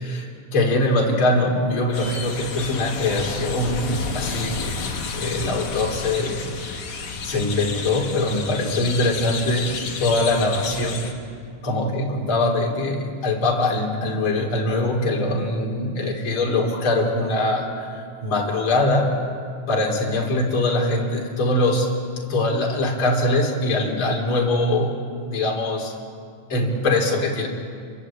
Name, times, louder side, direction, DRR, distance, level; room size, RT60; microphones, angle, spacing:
voice 1, 0.0-6.5 7.2-11.0 11.6-19.1 19.7-21.9 22.2-24.9 25.3-25.9 26.5-27.5, left 2 dB, 40° left, -1 dB, 4.0 m, -22 dB
sound 1, 1.9-11.1, left 4 dB, 65° left, 3.6 m, -31 dB
30.0 x 22.5 x 8.6 m, 2.3 s
omnidirectional pair, 3.7 m